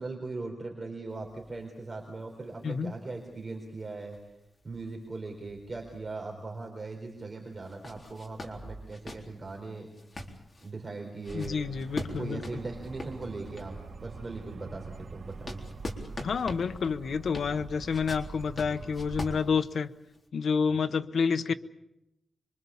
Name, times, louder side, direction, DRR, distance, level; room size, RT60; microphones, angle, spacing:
voice 1, 0.0-4.2 4.6-9.9 10.6-11.6 12.2-15.6, right 3 dB, 35° right, 1 dB, 4.3 m, -39 dB
sound 1, 1.1-6.4 6.8-6.9 7.5-13.9 14.4-20.2, left 1 dB, 30° left, 3.9 m, -44 dB
voice 2, 11.3-12.4 16.2-19.9 20.3-21.5, left 5 dB, 75° left, 9 dB, 0.9 m, -29 dB
sound 2, 11.3-19.3, right 4 dB, 65° right, 3.0 m, -44 dB
26.5 x 24.0 x 7.2 m, 0.87 s
wide cardioid pair, 130°, 0 cm